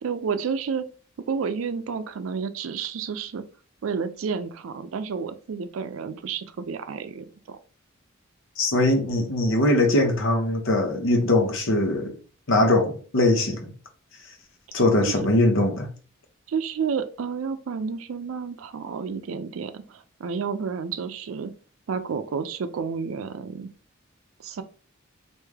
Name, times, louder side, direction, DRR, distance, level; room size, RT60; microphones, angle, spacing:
voice 1, 0.0-0.9 1.3-3.4 3.8-7.6 15.1-15.2 16.5-21.5 21.9-23.7 24.4-24.6, right 6 dB, 85° right, 0.4 m, -30 dB
voice 2, 8.6-12.1 12.5-13.7 14.7-15.9, left 1 dB, 70° left, 0.8 m, -21 dB
3.2 x 2.6 x 3.4 m
head